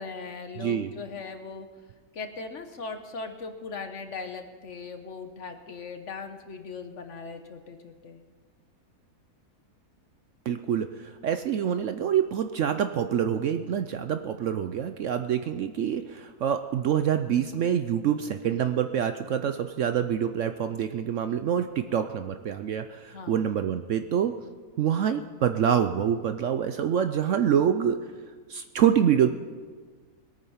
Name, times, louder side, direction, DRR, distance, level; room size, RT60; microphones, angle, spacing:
voice 1, 0.0-1.7 2.1-8.2 23.1-23.5, left 4 dB, 50° left, 7 dB, 1.3 m, -39 dB
voice 2, 0.6-0.9 10.5-24.3 24.8-28.0 28.5-29.3, right 9 dB, 65° right, 9 dB, 0.8 m, -26 dB
21.0 x 9.1 x 5.6 m, 1.5 s
omnidirectional pair, 1.7 m